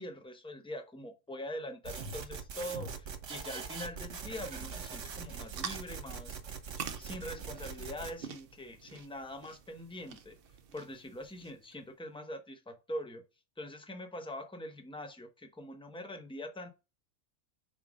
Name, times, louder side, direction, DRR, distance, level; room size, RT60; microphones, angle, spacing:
voice 1, 0.0-6.6 7.0-10.4 10.7-13.2 13.6-16.7, left 1 dB, 5° left, 0.8 m, -43 dB
sound 1, 1.8-8.1, right 5 dB, 80° right, 1.4 m, -42 dB
sound 2, 5.5-11.8, right 7 dB, 55° right, 0.8 m, -47 dB
5.5 x 3.6 x 4.8 m
omnidirectional pair, 1.2 m